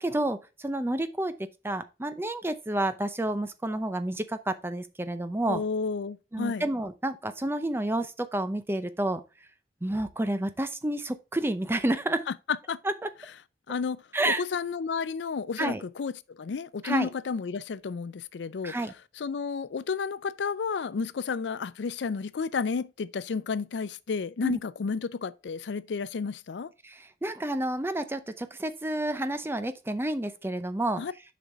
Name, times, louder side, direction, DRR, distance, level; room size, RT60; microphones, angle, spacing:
voice 1, 0.0-1.3 1.6-5.6 6.3-9.2 9.8-12.2 12.8-13.1 14.1-14.4 15.6-15.8 16.8-17.1 18.6-18.9 24.4-24.6 26.8-31.0, right 1 dB, 15° right, 0.5 m, -30 dB
voice 2, 5.5-6.7 12.5-12.8 13.7-16.1 16.4-18.8 19.2-26.7 31.0-31.1, left 5 dB, 90° left, 0.4 m, -31 dB
7.1 x 5.2 x 3.5 m
head